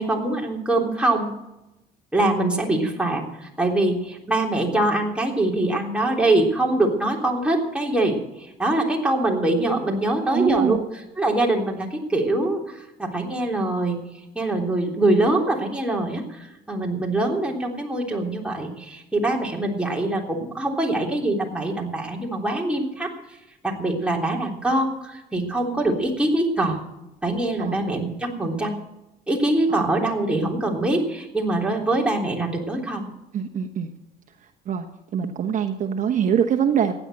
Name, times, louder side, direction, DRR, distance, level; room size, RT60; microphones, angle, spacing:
voice 1, 0.0-1.3 2.1-10.8 11.2-14.0 14.4-23.1 23.6-26.8 27.2-28.7 29.3-33.1, right 2 dB, 5° right, -1 dB, 3.5 m, -23 dB
voice 2, 10.3-10.8 27.6-27.8 29.7-29.9 33.3-33.9 34.4-34.9 35.1-37.0, right 8 dB, 50° right, 4 dB, 1.2 m, -24 dB
15.5 x 10.0 x 7.7 m, 0.93 s
cardioid pair, 110°, 17 cm